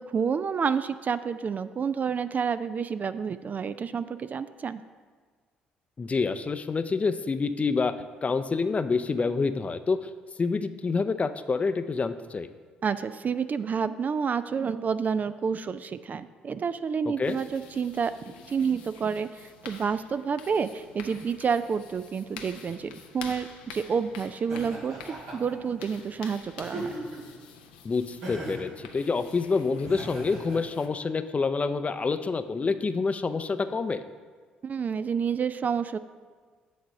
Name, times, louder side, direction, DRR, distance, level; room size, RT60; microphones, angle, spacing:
voice 1, 0.0-4.8 12.8-18.1 18.5-26.9 34.6-36.0, right 6 dB, 40° right, 13 dB, 0.3 m, -29 dB
voice 2, 6.0-7.9 8.2-10.1 10.4-12.5 17.1-17.4 27.8-34.0, left 4 dB, 30° left, 11 dB, 0.5 m, -27 dB
sound 1, 17.2-30.9, left 6 dB, 85° left, 0.6 m, -48 dB
Laughter, 24.5-25.6 26.6-27.3 28.2-28.7 29.8-30.6, right 1 dB, 75° right, 2.1 m, -38 dB
8.4 x 4.1 x 6.4 m, 1.5 s
hypercardioid pair, 50°, 4 cm